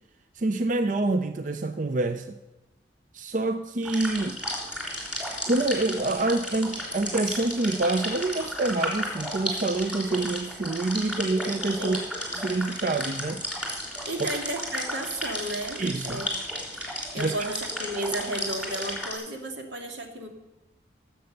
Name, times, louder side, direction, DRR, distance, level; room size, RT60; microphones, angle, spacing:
voice 1, 0.3-2.4 3.1-4.4 5.5-12.0 12.3-13.4 14.2-14.3 15.8-16.2 17.2-17.5, right 2 dB, 45° right, 9 dB, 0.5 m, -27 dB
sound 1, 3.8-19.1, equal, 5° right, 3.4 m, -33 dB
voice 2, 14.1-16.3 17.1-20.3, right 1 dB, 80° right, 3 dB, 2.2 m, -33 dB
17.0 x 7.9 x 6.6 m, 1.1 s
head